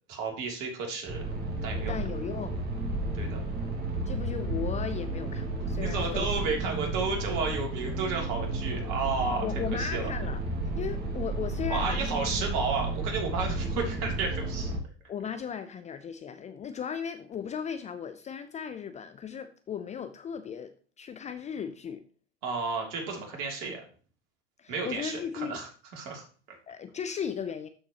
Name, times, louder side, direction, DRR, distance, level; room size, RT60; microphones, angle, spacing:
voice 1, 0.1-1.3 1.6-1.9 3.1-3.4 5.8-10.1 11.7-14.7 22.4-23.8 24.7-26.6, right 4 dB, 55° right, 2.9 m, -32 dB
sound 1, 1.1-14.8, right 2 dB, 30° right, 2.1 m, -32 dB
voice 2, 1.9-2.6 3.2-3.5 4.1-6.3 9.4-10.4 10.8-12.2 15.1-22.0 24.6-25.6 26.7-27.7, left 7 dB, 20° left, 0.5 m, -36 dB
12.5 x 4.5 x 2.9 m
hypercardioid pair, 95°, 33 cm